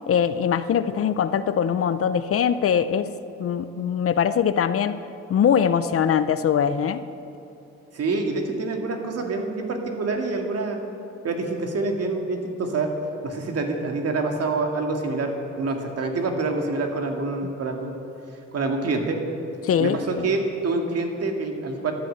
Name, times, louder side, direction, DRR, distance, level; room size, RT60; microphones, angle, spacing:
voice 1, 0.1-3.1 3.4-5.0 5.3-7.0 19.6-20.3, left 8 dB, 50° left, 13 dB, 0.6 m, -22 dB
voice 2, 7.9-10.8 11.2-12.9 13.2-17.9 18.5-19.2 19.8-21.9, right 3 dB, 55° right, 3 dB, 2.1 m, -26 dB
13.0 x 9.7 x 7.9 m, 3.0 s
cardioid pair, 90°, 30 cm